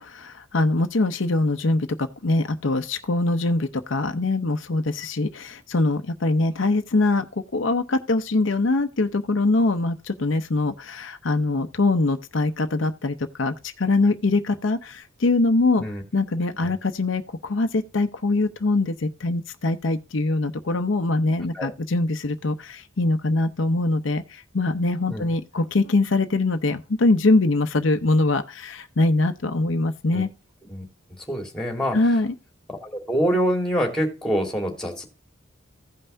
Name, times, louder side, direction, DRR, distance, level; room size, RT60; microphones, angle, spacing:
voice 1, 0.0-7.2 7.5-15.8 16.1-30.3 31.9-32.3, left 2 dB, 70° left, 0.7 m, -23 dB
voice 2, 31.3-32.0 32.7-35.1, equal, 5° left, 2.5 m, -25 dB
16.0 x 5.6 x 2.6 m
head